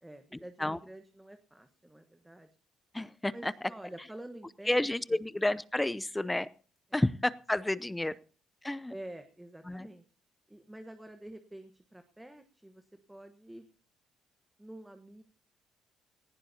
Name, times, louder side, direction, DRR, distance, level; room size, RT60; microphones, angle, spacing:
voice 1, 0.0-2.5 3.3-5.2 6.9-7.0 8.0-8.1 8.9-10.0 10.5-13.7 14.6-15.2, right 1 dB, 5° right, 7 dB, 1.2 m, -48 dB
voice 2, 2.9-3.5 4.7-6.5 6.9-8.1 8.6-8.9 9.7-9.9, left 1 dB, 10° left, 18 dB, 0.5 m, -30 dB
18.5 x 15.5 x 2.8 m, 0.39 s
cardioid pair, 115°, 0 cm